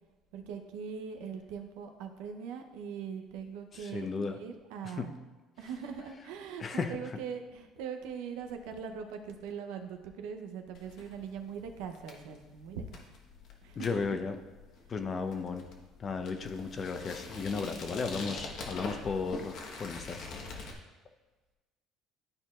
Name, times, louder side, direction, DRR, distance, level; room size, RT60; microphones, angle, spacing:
voice 1, 0.3-5.1 5.6-12.8 13.6-14.2, right 7 dB, 85° right, 6 dB, 0.7 m, -41 dB
voice 2, 3.7-4.4 4.8-5.1 6.6-7.0 13.8-14.4 14.9-15.7 16.0-20.2, left 4 dB, 35° left, 7 dB, 0.7 m, -35 dB
sound 1, 10.7-20.7, left 3 dB, 65° left, 1.2 m, -45 dB
12.5 x 4.4 x 2.4 m, 1.2 s
cardioid pair, 100°, 0 cm